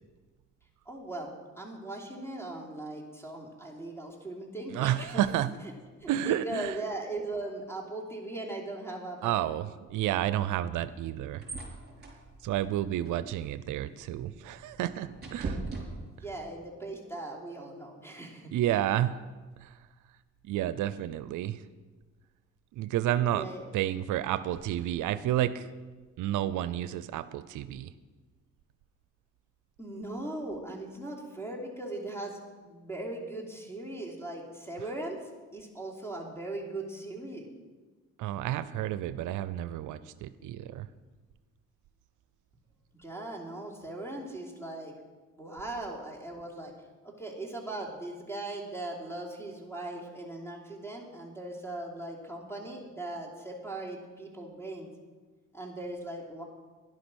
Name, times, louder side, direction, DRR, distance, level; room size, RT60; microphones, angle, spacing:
voice 1, 0.9-1.3 1.5-5.2 6.0-9.4 16.2-18.5 23.3-23.6 29.8-35.2 35.5-37.5 43.0-44.9 45.4-46.7 47.0-54.9 55.5-56.4, right 2 dB, 10° left, 0 dB, 3.3 m, -39 dB
voice 2, 4.7-5.5 6.1-6.7 9.2-11.4 12.4-15.6 18.5-19.2 19.6-19.7 20.4-21.6 22.7-23.5 23.7-25.7 26.2-27.9 38.2-40.9, right 12 dB, 85° right, 14 dB, 0.6 m, -30 dB
sound 1, 10.8-16.5, right 3 dB, 35° right, 4.7 m, -42 dB
11.5 x 11.0 x 6.3 m, 1.3 s
cardioid pair, 90°, 30 cm